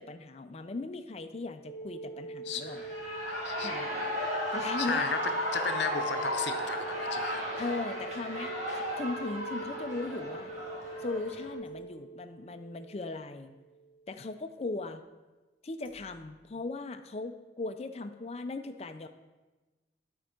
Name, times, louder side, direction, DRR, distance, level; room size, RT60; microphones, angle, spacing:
voice 1, 0.0-2.8 3.6-3.9 4.5-5.1 7.6-10.5 11.0-13.5 14.1-15.0 15.6-19.1, left 3 dB, 35° left, 8 dB, 0.4 m, -38 dB
sound 1, 1.6-14.1 15.8-15.9, right 2 dB, 10° left, 1.2 m, -43 dB
voice 2, 2.4-2.8 3.2-3.7 4.8-5.2 5.5-7.4, left 6 dB, 70° left, 8 dB, 0.7 m, -35 dB
Shout / Cheering, 2.6-11.5, equal, 35° right, 1.4 m, -35 dB
11.0 x 4.5 x 4.4 m, 1.2 s
head